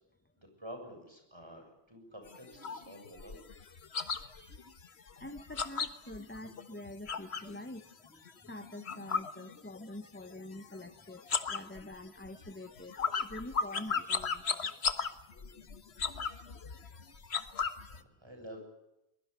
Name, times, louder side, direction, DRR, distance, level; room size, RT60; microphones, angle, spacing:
voice 1, 0.4-3.4 4.0-4.1 17.9-18.6, equal, 25° right, 4 dB, 7.4 m, -49 dB
sound 1, 2.3-7.6 7.9-10.1 10.3-10.9 11.2-18.0, left 5 dB, 75° left, 1.6 m, -36 dB
voice 2, 5.2-7.9 8.4-14.7 15.6-15.7 16.8-16.9, left 1 dB, 10° left, 9 dB, 1.1 m, -46 dB
23.0 x 21.5 x 8.3 m, 0.91 s
omnidirectional pair, 1.1 m